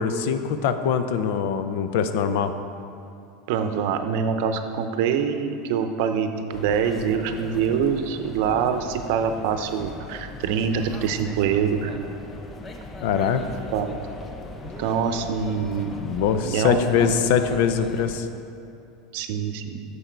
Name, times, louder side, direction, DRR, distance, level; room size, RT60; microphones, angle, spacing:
voice 1, 0.0-2.5 13.0-13.4 16.0-18.3, left 7 dB, 70° left, 9 dB, 0.6 m, -23 dB
voice 2, 3.5-11.9 13.7-13.9 14.8-15.9 16.4-17.0 19.1-19.8, right 7 dB, 65° right, 8 dB, 0.7 m, -25 dB
sound 1, 6.5-18.2, left 3 dB, 25° left, 0.7 m, -39 dB
8.8 x 6.9 x 4.6 m, 2.7 s
supercardioid pair, 125°, 0 cm